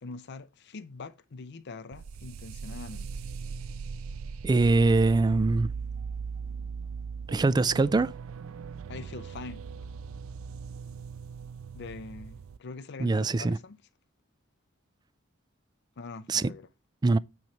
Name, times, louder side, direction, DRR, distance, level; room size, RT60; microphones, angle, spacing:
voice 1, 0.0-3.1 8.9-9.6 11.7-13.8 16.0-16.7, left 3 dB, 60° left, 0.6 m, -43 dB
sound 1, 1.9-12.6, right 5 dB, 90° right, 0.4 m, -39 dB
voice 2, 4.4-5.7 7.3-8.1 13.0-13.6 16.3-16.5 17.0-17.2, right 3 dB, 20° right, 0.3 m, -23 dB
9.1 x 3.2 x 5.2 m
head